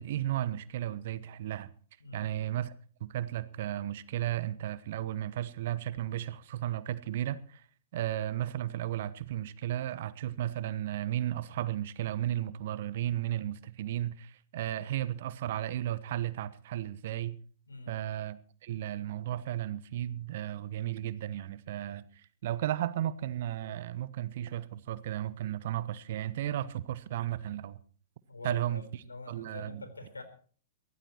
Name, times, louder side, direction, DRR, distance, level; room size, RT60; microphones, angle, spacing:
voice 1, 0.0-1.7 2.1-2.7 3.0-7.7 7.9-17.4 17.9-27.8 28.4-29.8, right 12 dB, 50° right, 1.0 m, -34 dB
voice 2, 28.3-30.2, left 3 dB, 80° left, 3.9 m, -45 dB
23.5 x 17.0 x 2.9 m
figure-of-eight pair, 105°, 0 cm